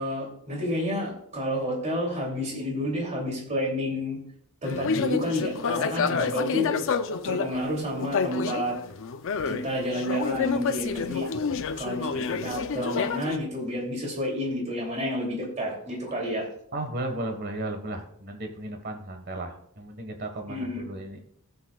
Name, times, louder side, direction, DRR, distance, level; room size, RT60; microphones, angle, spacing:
voice 1, 0.0-4.2 4.6-6.8 7.2-8.8 9.4-11.3 11.8-16.5 20.5-20.8, left 1 dB, 35° right, -1 dB, 2.8 m, -30 dB
sound 1, 4.6-7.6 8.0-9.7 9.9-13.4, left 5 dB, 60° left, 0.6 m, -29 dB
voice 2, 5.9-6.4 11.2-11.4 16.7-21.2, right 1 dB, 50° right, 5 dB, 1.5 m, -35 dB
17.0 x 7.2 x 2.4 m, 0.67 s
head